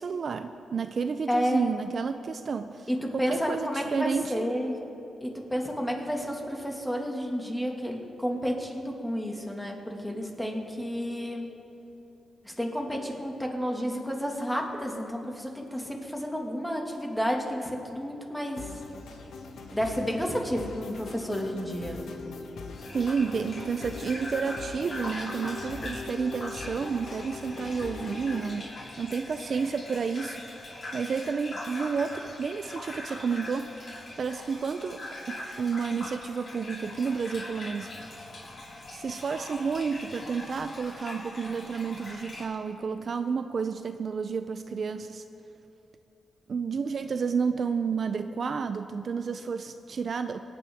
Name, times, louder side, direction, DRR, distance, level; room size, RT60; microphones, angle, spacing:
voice 1, 0.0-4.5 22.9-35.0 35.3-37.9 38.9-45.2 46.5-50.4, right 5 dB, 55° right, 9 dB, 0.4 m, -31 dB
voice 2, 1.3-1.7 2.9-4.8 5.2-11.5 12.4-18.7 19.7-22.0, equal, 5° left, 1 dB, 1.9 m, -31 dB
sound 1, 18.6-28.6, left 4 dB, 85° left, 1.1 m, -41 dB
Gurgling / Bathtub (filling or washing), 22.8-42.4, left 1 dB, 50° left, 3.5 m, -41 dB
24.0 x 9.5 x 3.5 m, 2.9 s
cardioid pair, 105°, 0 cm